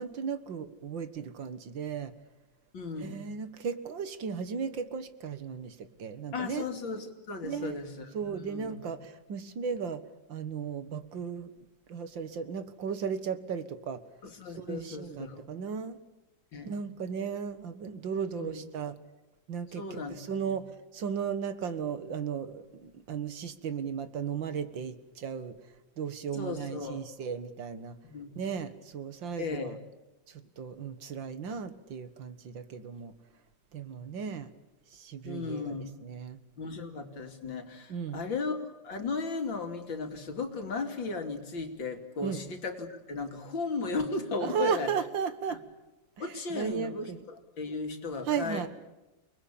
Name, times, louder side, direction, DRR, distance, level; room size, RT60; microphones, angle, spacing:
voice 1, 0.0-2.1 3.0-6.7 7.4-7.8 8.1-10.0 10.3-11.5 11.9-14.0 14.6-16.0 16.7-19.0 19.5-25.6 26.0-28.0 28.4-29.7 30.3-33.1 33.7-34.5 34.9-35.8 36.0-36.4 37.9-38.2 42.2-42.5 44.4-45.6 46.2-47.3 48.3-48.7, right 6 dB, 85° right, 12 dB, 2.3 m, -35 dB
voice 2, 2.7-3.2 6.3-8.8 14.2-15.4 16.5-16.7 18.4-18.6 19.7-20.2 20.4-20.6 26.3-27.0 28.0-28.3 29.4-29.8 35.2-36.0 36.6-44.9 45.5-45.6 46.2-48.6, left 4 dB, 85° left, 5 dB, 3.4 m, -36 dB
29.5 x 20.5 x 8.7 m, 1.0 s
omnidirectional pair, 2.0 m